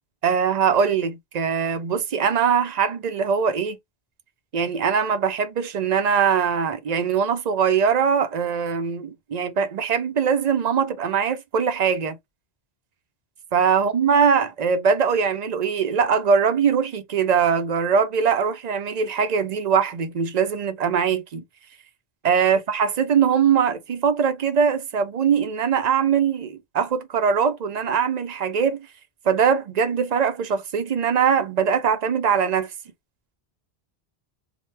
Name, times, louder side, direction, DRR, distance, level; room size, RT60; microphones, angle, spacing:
voice 1, 0.2-3.8 4.5-12.2 13.5-21.4 22.2-28.9 29.2-32.7, right 6 dB, 50° right, 0.6 m, -21 dB
2.9 x 2.1 x 3.2 m
omnidirectional pair, 1.1 m